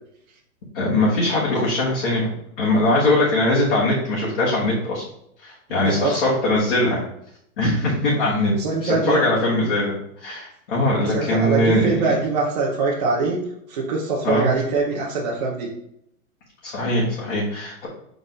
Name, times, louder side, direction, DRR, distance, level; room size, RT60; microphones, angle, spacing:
voice 1, 0.7-2.3 2.6-5.0 5.4-7.0 7.6-8.5 8.8-12.0 14.2-14.5 16.6-17.9, left 1 dB, 40° left, -7 dB, 1.7 m, -21 dB
voice 2, 5.8-6.3 8.6-9.2 11.0-15.7, right 3 dB, 30° right, -5 dB, 0.8 m, -23 dB
6.0 x 3.9 x 4.0 m, 0.72 s
hypercardioid pair, 180°, 42 cm